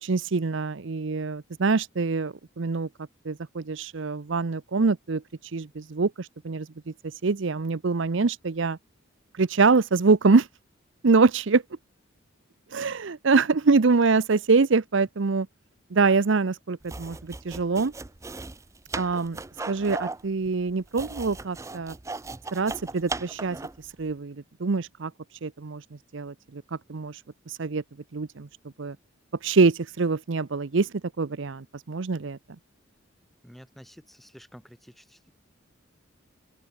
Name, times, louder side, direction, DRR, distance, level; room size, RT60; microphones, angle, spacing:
voice 1, 0.0-2.9 3.3-5.2 5.5-6.7 7.2-8.8 9.4-10.5 11.0-11.6 12.7-15.5 15.9-17.9 19.0-19.4 19.6-21.9 22.5-23.6 24.0-25.1 25.4-25.8 26.1-26.6 26.9-27.2 27.5-27.8 28.1-28.5 28.8-29.0 29.4-30.9 31.2-32.4, right 4 dB, 65° right, 0.6 m, -24 dB
sound 1, 16.8-23.9, right 3 dB, 15° right, 0.5 m, -37 dB
voice 2, 33.4-35.3, equal, ahead, 2.9 m, -50 dB
open air
head